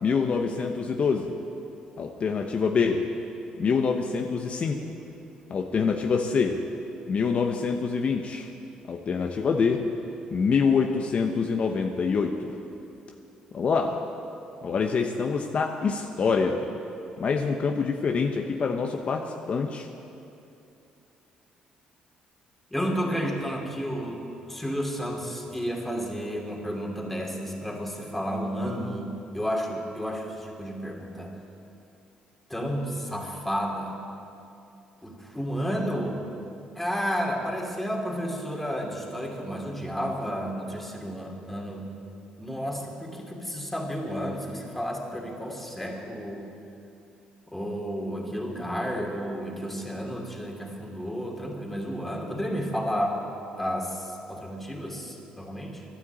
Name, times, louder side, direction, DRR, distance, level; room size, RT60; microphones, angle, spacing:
voice 1, 0.0-1.3 2.0-3.1 3.6-4.8 5.5-6.6 7.1-8.5 8.9-9.8 10.3-12.5 13.5-14.0 14.6-16.7 17.2-19.9, left 5 dB, 50° left, 3 dB, 1.0 m, -25 dB
voice 2, 22.7-31.3 32.5-34.0 35.0-36.2 36.7-41.9 42.4-46.4 47.5-53.2 53.6-55.8, equal, 5° left, 0 dB, 2.9 m, -31 dB
12.0 x 10.0 x 8.8 m, 2.7 s
supercardioid pair, 70°, 3 cm